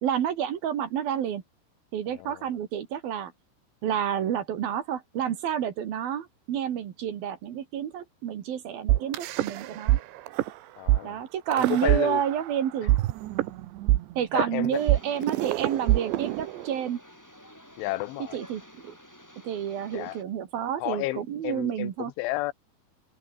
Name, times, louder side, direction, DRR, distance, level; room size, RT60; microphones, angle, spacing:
voice 1, 0.0-1.4 1.9-3.3 3.8-10.0 11.0-13.0 14.2-17.0 18.3-18.9 19.4-22.1, right 9 dB, 60° right, 3.3 m, -29 dB
voice 2, 2.1-2.5 10.8-11.2 11.7-12.2 14.3-14.8 17.8-18.4 19.9-20.2 20.8-22.5, left 18 dB, 85° left, 3.2 m, -31 dB
sound 1, 8.9-10.0 10.3-10.5 10.9-11.0 11.5-12.5 12.9-16.9, right 16 dB, 80° right, 3.2 m, -24 dB
sound 2, 14.7-20.2, equal, 5° left, 7.0 m, -51 dB
open air
omnidirectional pair, 5.4 m